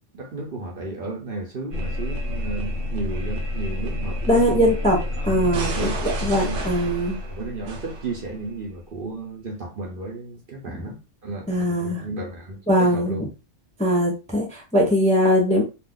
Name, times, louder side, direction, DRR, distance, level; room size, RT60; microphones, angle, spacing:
voice 1, 0.1-4.7 5.2-6.7 7.3-13.2, right 2 dB, 50° right, 0.9 m, -33 dB
sound 1, 1.7-8.5, left 1 dB, 85° right, 1.1 m, -29 dB
voice 2, 4.3-5.0 5.2-5.7 6.0-7.2 10.7-10.8 11.5-12.0 12.7-13.2 13.8-15.6, equal, 5° left, 0.6 m, -20 dB
2.5 x 2.4 x 3.7 m
omnidirectional pair, 1.3 m